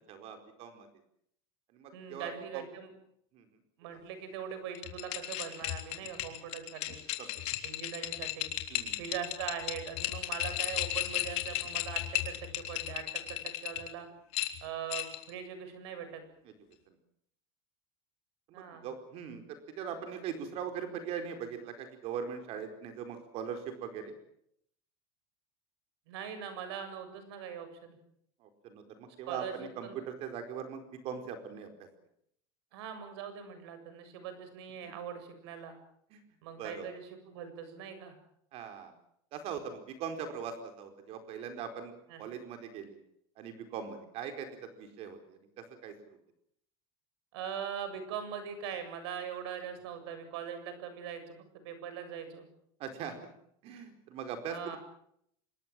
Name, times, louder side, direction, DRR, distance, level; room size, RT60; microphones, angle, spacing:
voice 1, 0.1-0.9 1.7-2.6 3.3-3.5 7.2-7.3 8.7-9.0 16.5-16.6 16.9-17.0 18.5-24.1 28.4-31.9 34.8-34.9 36.1-36.2 36.6-36.9 38.5-38.9 39.3-41.9 42.2-43.0 43.4-44.5 44.8-45.9 52.8-53.3 53.6-54.8, right 7 dB, 50° right, 7 dB, 4.5 m, -41 dB
voice 2, 1.9-2.9 3.8-7.0 7.6-8.5 9.0-14.1 14.6-16.2 18.5-18.9 26.1-28.0 29.3-30.0 32.7-35.8 36.4-38.2 42.1-42.2 47.3-52.4 54.5-54.8, right 8 dB, 80° right, 10 dB, 7.5 m, -41 dB
sound 1, 4.8-13.9 14.3-15.3, left 15 dB, 55° left, 3.6 m, -35 dB
26.0 x 22.0 x 7.6 m, 0.71 s
supercardioid pair, 145°, 13 cm